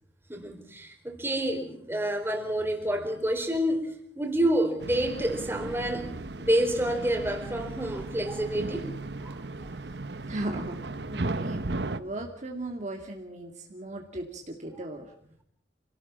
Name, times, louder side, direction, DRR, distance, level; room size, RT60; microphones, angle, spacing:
voice 1, 0.3-6.1 6.4-8.9 9.2-9.7 14.7-14.8, right 1 dB, 15° right, 4 dB, 4.3 m, -28 dB
sound 1, 4.8-12.0, right 2 dB, 70° right, 1.2 m, -36 dB
voice 2, 10.3-10.7 11.1-15.0, right 1 dB, 40° right, 2 dB, 2.4 m, -37 dB
27.5 x 18.0 x 7.4 m, 0.68 s
head